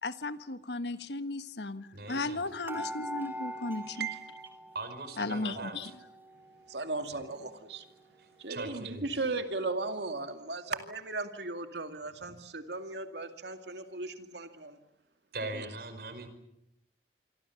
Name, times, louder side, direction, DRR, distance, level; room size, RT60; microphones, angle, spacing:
voice 1, 0.0-4.1 5.2-6.1, left 2 dB, 75° left, 11 dB, 1.4 m, -36 dB
voice 2, 1.9-2.4 4.7-5.9 8.5-9.0 15.3-16.3, right 2 dB, 60° right, 8 dB, 5.2 m, -40 dB
sound 1, 2.7-5.2 5.5-6.5 7.0-7.1 7.3-7.5, equal, 10° right, 3.2 m, -42 dB
voice 3, 3.9-4.3 5.5-5.7 6.7-7.8 8.4-14.8 15.4-15.7, right 3 dB, 75° right, 7 dB, 2.4 m, -37 dB
27.5 x 24.5 x 7.1 m, 0.82 s
head